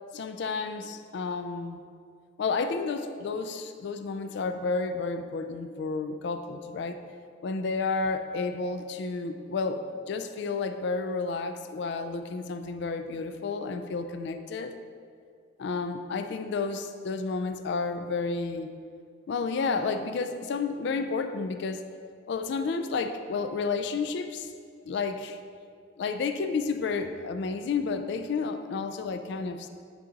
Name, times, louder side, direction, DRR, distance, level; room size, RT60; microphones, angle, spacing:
voice 1, 0.1-1.8 2.4-7.0 7.4-14.7 15.6-18.7 19.3-21.8 22.3-24.5 24.8-25.4 26.0-29.7, left 4 dB, 65° left, 8 dB, 0.3 m, -31 dB
9.2 x 4.0 x 3.9 m, 2.2 s
head